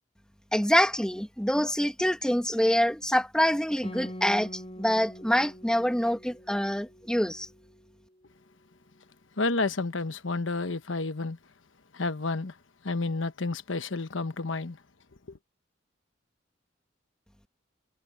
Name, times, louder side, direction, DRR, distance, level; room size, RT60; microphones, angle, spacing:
voice 1, 0.5-7.5, equal, 5° left, 2.0 m, -26 dB
Guitar, 3.8-8.8, equal, 30° left, 4.5 m, -45 dB
voice 2, 9.4-11.4 11.9-12.5 12.8-14.8, left 3 dB, 80° left, 1.1 m, -30 dB
head